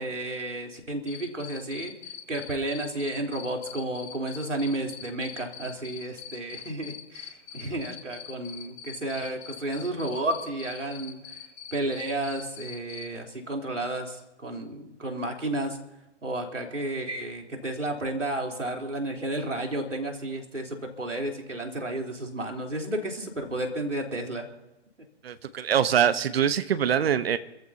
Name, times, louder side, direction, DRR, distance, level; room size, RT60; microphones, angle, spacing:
voice 1, 0.0-1.9 2.3-11.4 11.7-15.8 16.2-24.5, right 1 dB, 90° right, 1 dB, 3.7 m, -32 dB
Cricket, 1.1-13.0, left 8 dB, 40° left, 7.0 m, -42 dB
voice 2, 25.2-27.4, right 8 dB, 55° right, 12 dB, 1.1 m, -24 dB
28.0 x 14.5 x 2.8 m, 0.97 s
figure-of-eight pair, 130°, 36 cm